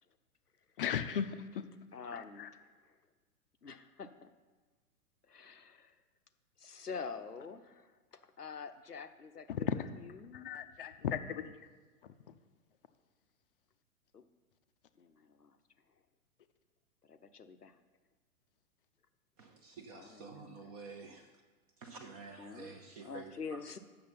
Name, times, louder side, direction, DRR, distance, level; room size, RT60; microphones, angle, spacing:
voice 1, 0.8-1.6 2.1-2.5 9.5-9.9 10.3-11.4, left 8 dB, 40° left, 10 dB, 0.5 m, -36 dB
voice 2, 1.9-2.9 3.6-4.3 5.3-5.9 6.6-9.7 9.9-10.5 14.1-14.2 15.0-15.6 17.0-17.8 19.9-20.7 22.4-22.8 23.0-23.8, left 5 dB, 90° left, 10 dB, 0.7 m, -47 dB
voice 3, 19.4-21.3 21.8-23.8, right 4 dB, 25° right, 4 dB, 0.7 m, -50 dB
7.7 x 6.4 x 5.8 m, 1.4 s
figure-of-eight pair, 110°, 45 cm